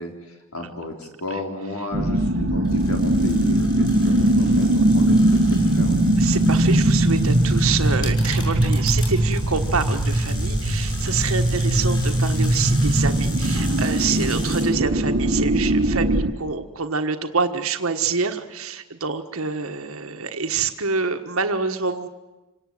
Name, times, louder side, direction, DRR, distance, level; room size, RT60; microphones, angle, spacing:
voice 1, 0.0-6.0, left 1 dB, 80° left, 3 dB, 4.2 m, -34 dB
sound 1, 1.9-16.3, right 1 dB, 55° right, 1.3 m, -20 dB
sound 2, 2.7-14.7, left 2 dB, 20° left, 6.6 m, -37 dB
voice 2, 6.2-22.1, right 5 dB, 75° right, 7 dB, 1.4 m, -26 dB
27.0 x 18.5 x 7.8 m, 1.1 s
head